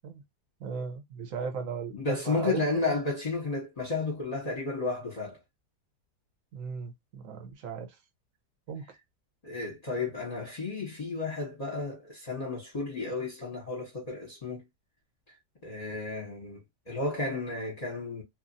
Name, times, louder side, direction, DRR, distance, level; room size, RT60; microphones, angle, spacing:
voice 1, 0.6-3.0 6.5-8.0 8.7-8.9, right 6 dB, 60° right, 1.0 m, -37 dB
voice 2, 1.9-5.4 9.4-14.7 15.6-16.6 16.9-18.2, left 3 dB, 30° left, 0.9 m, -32 dB
2.9 x 2.5 x 2.6 m
omnidirectional pair, 1.8 m